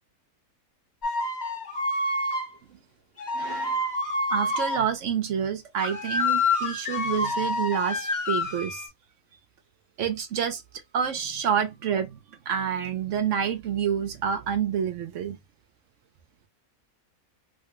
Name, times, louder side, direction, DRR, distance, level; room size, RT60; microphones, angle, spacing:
sound 1, 1.0-2.5 3.2-4.8 5.8-8.9, left 2 dB, 40° left, 0.8 m, -27 dB
voice 1, 3.3-3.9 4.3-8.8 10.0-10.6 10.9-15.4, right 8 dB, 65° right, 0.9 m, -28 dB
3.1 x 2.2 x 2.9 m
omnidirectional pair, 1.5 m